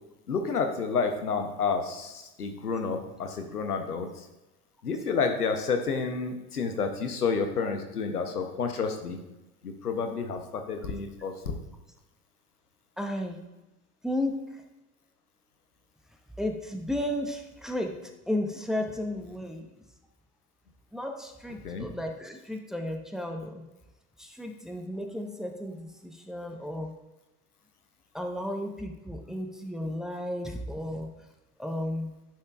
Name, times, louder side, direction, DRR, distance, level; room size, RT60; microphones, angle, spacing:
voice 1, 0.3-4.3 4.8-9.2 9.6-11.6 21.6-21.9, left 5 dB, 90° left, 6 dB, 0.8 m, -30 dB
voice 2, 13.0-13.4 14.0-14.4 16.4-19.7 20.9-23.6 24.2-26.9 28.1-31.1 31.6-32.1, left 1 dB, ahead, 3 dB, 0.9 m, -33 dB
11.0 x 5.7 x 2.4 m, 1.0 s
figure-of-eight pair, 70°, 45 cm